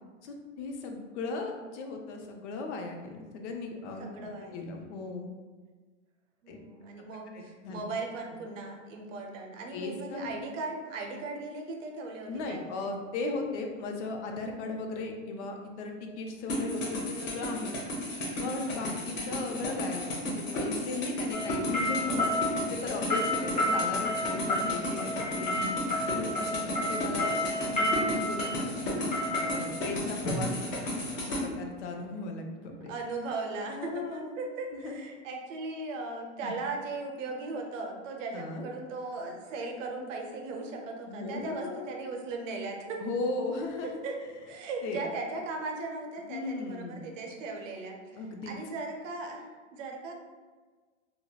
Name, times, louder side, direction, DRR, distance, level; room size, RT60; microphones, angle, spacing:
voice 1, 0.2-5.3 6.5-6.6 7.3-7.8 9.7-10.3 12.3-17.7 18.4-25.7 26.1-29.1 29.4-30.5 31.1-32.9 33.8-34.4 34.7-35.0 36.4-36.5 38.3-38.7 41.0-41.9 43.0-44.0 44.8-45.0 46.3-47.2 48.2-48.5, left 3 dB, 65° left, 3 dB, 0.5 m, -37 dB
voice 2, 4.0-4.7 6.4-12.9 18.6-19.0 32.6-43.0 43.8-44.2 44.5-49.4 49.7-50.1, right 3 dB, 75° right, 2 dB, 0.6 m, -38 dB
sound 1, 16.5-31.4, left 1 dB, 80° left, 0.9 m, -34 dB
sound 2, 21.3-31.2, left 1 dB, 20° left, 0.8 m, -31 dB
2.7 x 2.0 x 2.3 m, 1.4 s
hypercardioid pair, 125°, 38 cm